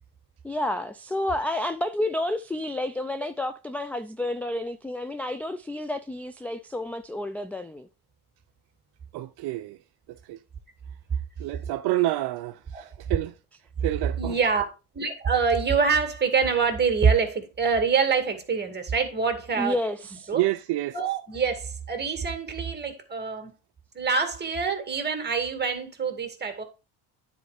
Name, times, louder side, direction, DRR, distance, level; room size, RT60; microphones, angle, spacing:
voice 1, 0.4-7.9 19.6-20.3, left 1 dB, 5° left, 0.3 m, -30 dB
voice 2, 9.1-9.8 10.1-10.4 11.4-13.4 13.8-14.4 20.3-21.0, right 16 dB, 60° right, 0.6 m, -28 dB
voice 3, 14.2-14.6 14.9-19.8 20.3-20.4 20.9-23.5 23.9-26.6, right 5 dB, 25° right, 2.3 m, -25 dB
9.6 x 4.5 x 4.9 m
supercardioid pair, 95°, 44 cm